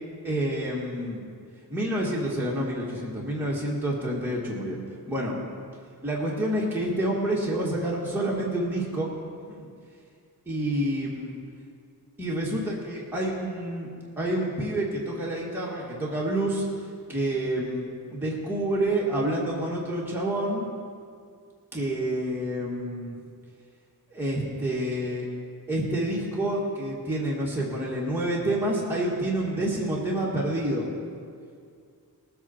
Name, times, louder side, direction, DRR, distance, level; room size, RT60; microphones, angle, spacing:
voice 1, 0.2-1.2 1.7-4.8 5.0-5.4 6.0-9.1 9.4-9.7 10.5-11.4 12.2-13.9 14.2-20.7 21.7-23.2 24.1-25.3 25.7-30.9, right 1 dB, 5° right, -5 dB, 1.7 m, -28 dB
19.0 x 8.3 x 4.4 m, 2.2 s
wide cardioid pair, 145°, 37 cm